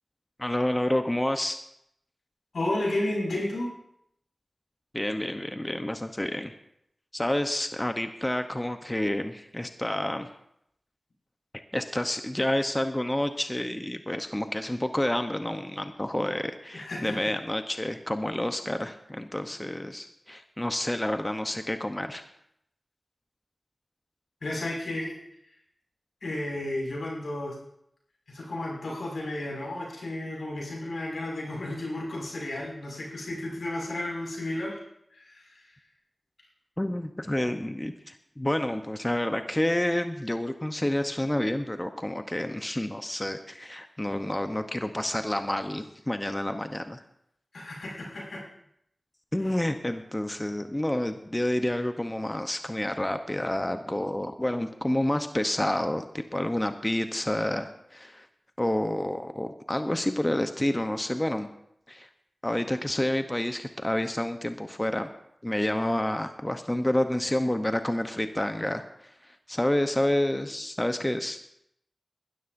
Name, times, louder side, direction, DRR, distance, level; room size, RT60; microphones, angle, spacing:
voice 1, 0.4-1.6 4.9-6.5 7.1-10.3 11.5-22.2 36.8-47.0 49.3-56.1 56.3-58.3 58.6-61.5 61.9-62.1 62.4-65.1 65.4-71.4, left 1 dB, 20° left, 7 dB, 0.8 m, -29 dB
voice 2, 2.5-3.7 16.7-17.3 24.4-25.1 26.2-27.5 28.3-34.8 35.1-35.7 47.5-48.4 49.4-49.5, left 1 dB, 90° left, -3 dB, 5.8 m, -32 dB
20.5 x 12.5 x 2.6 m, 0.75 s
cardioid pair, 50°, 0 cm